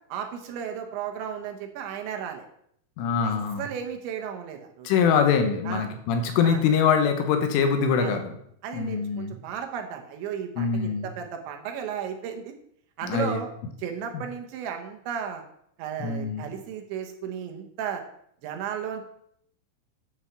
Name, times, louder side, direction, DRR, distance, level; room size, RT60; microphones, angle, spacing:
voice 1, 0.1-2.5 3.6-4.9 5.7-5.9 6.4-6.6 8.0-8.2 8.6-12.5 13.0-13.5 13.8-15.4 15.8-18.0 18.4-19.0, right 8 dB, 75° right, 4 dB, 3.3 m, -34 dB
voice 2, 3.0-3.7 4.9-8.3 8.7-9.4 10.6-11.1 13.0-13.4 14.1-14.2 16.0-16.5, left 6 dB, 90° left, 6 dB, 3.8 m, -24 dB
9.8 x 6.3 x 7.2 m, 0.70 s
omnidirectional pair, 5.6 m